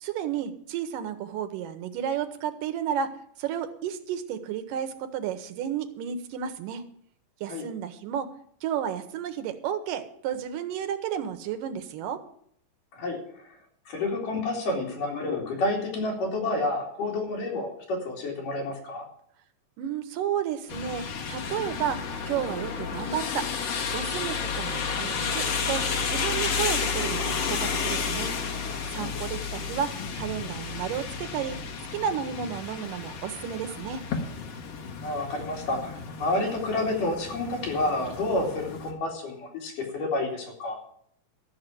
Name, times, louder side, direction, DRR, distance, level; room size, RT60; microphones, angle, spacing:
voice 1, 0.0-6.8 7.4-8.3 8.6-12.2 19.8-23.5 23.9-28.4 28.9-31.6 31.9-34.0, right 9 dB, 80° right, 9 dB, 2.5 m, -32 dB
voice 2, 12.9-13.5 13.9-19.1 28.9-29.1 35.0-40.8, left 2 dB, 70° left, 0 dB, 4.3 m, -29 dB
sound 1, 20.7-38.9, left 5 dB, 55° left, 2.4 m, -32 dB
13.0 x 6.5 x 9.0 m, 0.67 s
omnidirectional pair, 3.8 m